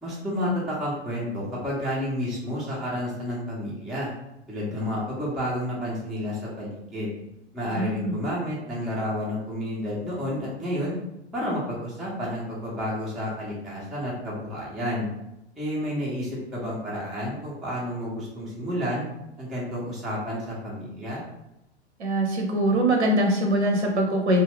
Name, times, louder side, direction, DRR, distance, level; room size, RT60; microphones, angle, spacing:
voice 1, 0.0-4.1 4.5-7.1 7.5-11.0 11.3-15.1 15.6-19.1 19.4-21.2, equal, ahead, -6 dB, 0.3 m, -30 dB
voice 2, 7.8-8.1 22.0-24.4, right 1 dB, 80° right, 1 dB, 0.7 m, -22 dB
2.3 x 2.1 x 3.4 m, 0.88 s
figure-of-eight pair, 90°, 33 cm